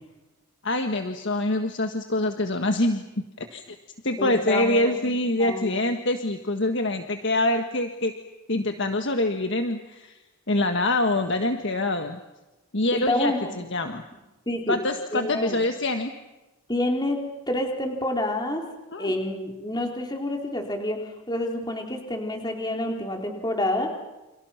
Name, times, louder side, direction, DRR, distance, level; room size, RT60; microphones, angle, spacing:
voice 1, 0.6-3.0 3.4-3.6 4.0-8.1 8.5-10.2 10.5-12.2 12.7-14.0 14.7-16.1 18.9-19.1, left 2 dB, 55° left, 6 dB, 1.6 m, -25 dB
voice 2, 4.2-5.1 5.4-5.9 12.9-13.6 14.5-14.8 15.1-15.6 16.7-17.2 17.5-18.6 19.0-21.0 21.3-23.9, left 1 dB, 20° left, 2 dB, 4.0 m, -28 dB
29.5 x 29.0 x 5.9 m, 1.0 s
head